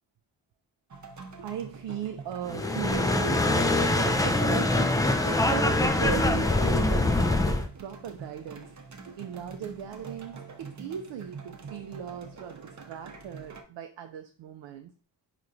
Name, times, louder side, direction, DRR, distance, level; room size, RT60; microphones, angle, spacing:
sound 1, 0.9-13.6, right 4 dB, 40° right, 0.8 m, -45 dB
voice 1, 1.4-4.8 5.2-8.7 9.1-14.9, right 8 dB, 80° right, 6 dB, 0.5 m, -38 dB
sound 2, 2.5-7.7, left 2 dB, 10° left, 0.3 m, -24 dB
4.3 x 3.0 x 2.5 m, 0.40 s
cardioid pair, 45°, 43 cm